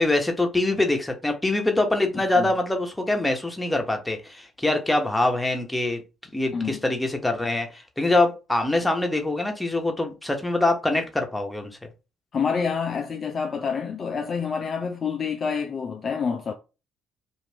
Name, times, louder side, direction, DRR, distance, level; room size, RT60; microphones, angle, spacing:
voice 1, 0.0-6.0 6.3-11.9, left 2 dB, 10° left, 1.0 m, -24 dB
voice 2, 6.5-6.8 12.3-16.5, left 6 dB, 45° left, 0.4 m, -27 dB
2.6 x 2.4 x 3.3 m
hypercardioid pair, 50°, 0 cm